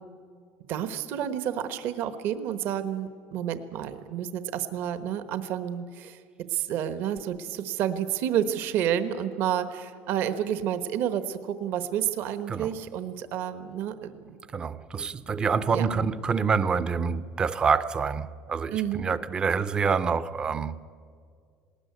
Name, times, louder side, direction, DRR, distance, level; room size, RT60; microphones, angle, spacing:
voice 1, 0.7-6.2 6.5-14.4 15.7-15.9 18.7-19.1, right 10 dB, 55° right, 1.1 m, -30 dB
voice 2, 14.5-20.7, right 5 dB, 20° right, 0.6 m, -27 dB
20.0 x 19.0 x 9.4 m
cardioid pair, 175°, 4 cm